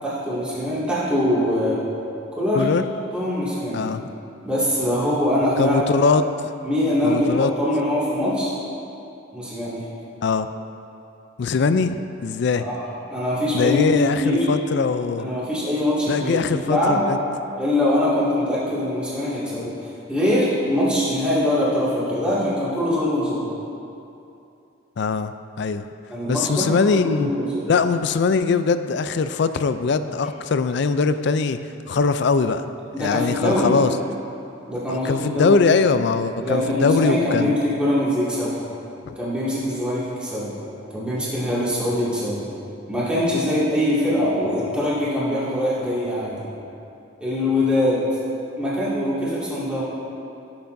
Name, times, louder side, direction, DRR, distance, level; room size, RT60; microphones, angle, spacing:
voice 1, 0.0-1.8 2.3-2.7 3.1-3.8 4.4-5.8 6.6-8.5 9.3-9.8 12.6-12.8 13.1-13.9 14.2-14.5 15.2-16.4 16.7-17.0 17.6-19.7 20.1-23.5 26.1-27.6 32.9-33.7 34.7-35.5 36.4-38.7 39.2-40.5 40.9-42.4 42.9-46.5 47.2-48.0 48.6-49.8, left 1 dB, 5° right, -10 dB, 2.1 m, -23 dB
voice 2, 3.7-4.1 5.6-6.2 7.0-7.5 10.2-10.5 11.4-12.6 13.5-15.3 16.1-17.2 25.0-25.9 26.3-27.3 27.7-31.6 31.9-32.6 33.0-33.9 34.9-37.5 39.1-39.2, left 4 dB, 55° left, 11 dB, 0.3 m, -21 dB
15.0 x 7.0 x 2.6 m, 2.7 s
head